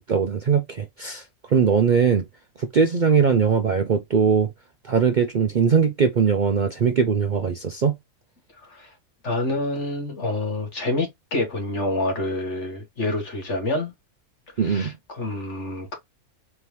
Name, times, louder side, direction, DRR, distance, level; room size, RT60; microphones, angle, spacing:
voice 1, 0.0-2.2 2.6-4.5 4.8-7.9 14.6-14.9, right 6 dB, 60° right, 0.5 m, -20 dB
voice 2, 8.6-8.9 9.2-13.9 14.6-15.9, left 2 dB, 55° left, 2.1 m, -27 dB
4.4 x 2.9 x 3.2 m
omnidirectional pair, 1.5 m